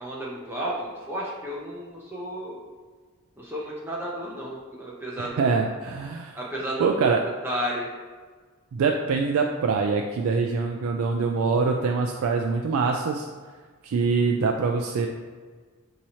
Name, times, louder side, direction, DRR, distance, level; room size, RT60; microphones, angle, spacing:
voice 1, 0.0-2.6 3.4-5.6 6.4-7.1 7.4-7.9, equal, 10° right, -4 dB, 0.5 m, -32 dB
voice 2, 5.2-6.3 6.8-7.2 8.7-13.3 13.8-15.1, right 4 dB, 80° right, 3 dB, 0.3 m, -24 dB
6.1 x 2.8 x 2.8 m, 1.5 s
head